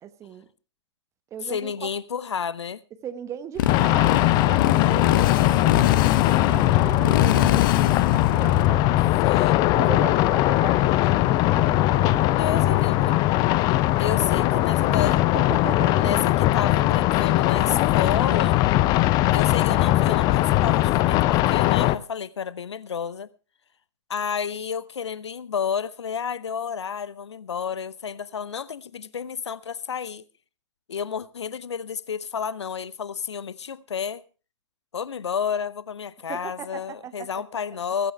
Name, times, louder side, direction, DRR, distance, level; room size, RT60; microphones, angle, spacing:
voice 1, 0.0-0.5 1.3-1.9 3.0-9.1 9.7-13.3 14.1-16.1 36.3-37.4, right 9 dB, 20° right, 1.0 m, -38 dB
voice 2, 1.4-2.8 9.2-9.6 12.4-13.2 14.0-15.1 16.0-18.6 19.3-23.3 24.1-30.2 30.9-34.2 34.9-38.1, left 7 dB, 70° left, 0.7 m, -31 dB
Motorcycle, 3.6-8.7, left 12 dB, 45° left, 1.0 m, -24 dB
sound 1, 3.7-22.0, left 16 dB, 25° left, 0.6 m, -20 dB
sound 2, 4.4-10.2, right 1 dB, 80° right, 3.5 m, -49 dB
16.0 x 15.0 x 3.3 m
figure-of-eight pair, 110°, 15 cm